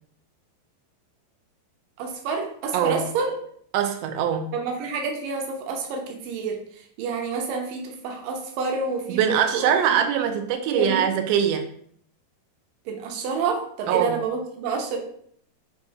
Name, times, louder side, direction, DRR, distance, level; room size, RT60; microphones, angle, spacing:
voice 1, 2.0-3.3 4.5-6.6 7.0-10.1 10.5-11.0 12.9-15.0, right 4 dB, 70° right, 2 dB, 2.3 m, -28 dB
voice 2, 2.7-3.0 3.7-4.5 9.1-11.7 13.9-14.1, right 8 dB, 90° right, 6 dB, 2.1 m, -22 dB
7.9 x 2.8 x 4.7 m, 0.62 s
omnidirectional pair, 4.9 m